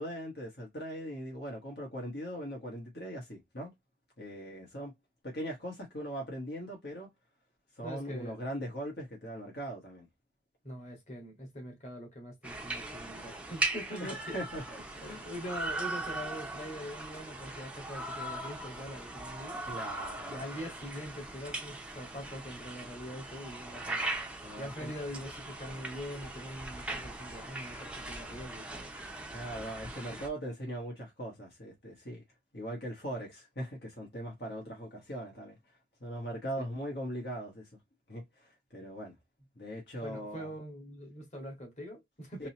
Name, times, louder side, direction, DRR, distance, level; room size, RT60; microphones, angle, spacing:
voice 1, 0.0-3.7 4.2-4.9 5.2-7.1 7.8-10.1 14.0-14.8 15.0-15.2 19.6-20.5 24.4-24.9 29.3-32.2 32.5-35.6 36.0-37.7 38.1-39.2 39.5-40.5 42.4-42.5, equal, 65° left, 1.5 m, -40 dB
voice 2, 7.8-8.4 10.6-14.4 15.0-19.6 20.3-24.1 24.6-28.9 40.0-42.5, equal, 40° left, 1.8 m, -43 dB
sound 1, 12.4-30.3, right 2 dB, 5° right, 0.6 m, -40 dB
3.9 x 2.8 x 2.9 m
head